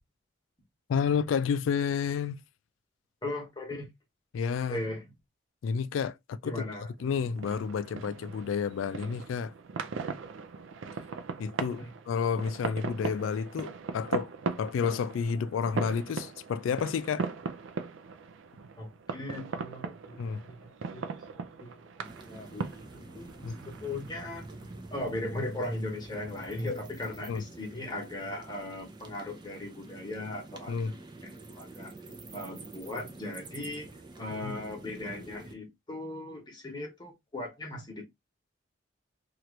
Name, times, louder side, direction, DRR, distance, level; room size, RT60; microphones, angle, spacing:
voice 1, 0.9-2.4 4.3-4.8 5.6-6.6 7.0-9.5 11.4-14.3 14.6-17.3 20.2-20.4 23.4-23.6 27.3-27.4 30.7-30.9 34.4-34.5, left 6 dB, 90° left, 0.3 m, -30 dB
voice 2, 3.2-3.9 4.7-5.1 6.4-7.3 11.8-11.9 18.8-24.5 24.9-30.9 31.2-31.9 32.3-33.9 34.2-38.0, left 2 dB, 20° left, 1.1 m, -38 dB
sound 1, 7.0-26.3, right 5 dB, 85° right, 0.4 m, -39 dB
sound 2, 22.0-35.5, right 2 dB, 25° right, 0.5 m, -47 dB
2.9 x 2.5 x 3.1 m
head